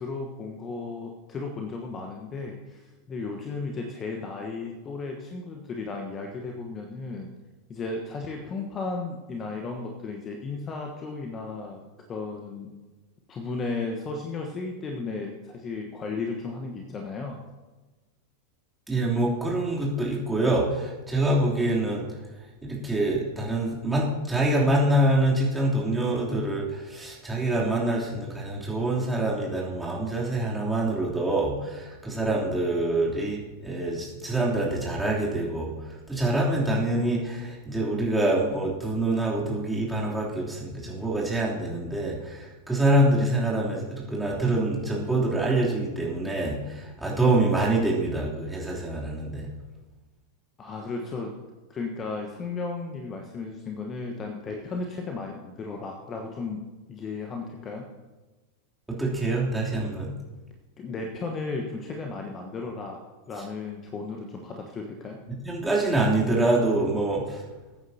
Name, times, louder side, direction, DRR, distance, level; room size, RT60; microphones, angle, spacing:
voice 1, 0.0-7.3 7.7-11.8 12.1-12.7 13.3-17.4 50.6-51.3 51.7-56.6 56.9-57.9 60.8-63.0 63.3-65.2, left 3 dB, 25° left, 2 dB, 1.2 m, -34 dB
voice 2, 18.9-22.1 22.6-35.7 36.1-49.5 58.9-60.1 65.4-67.4, right 1 dB, 5° right, -5 dB, 3.1 m, -25 dB
21.0 x 9.2 x 2.8 m, 1.2 s
figure-of-eight pair, 90°, 0 cm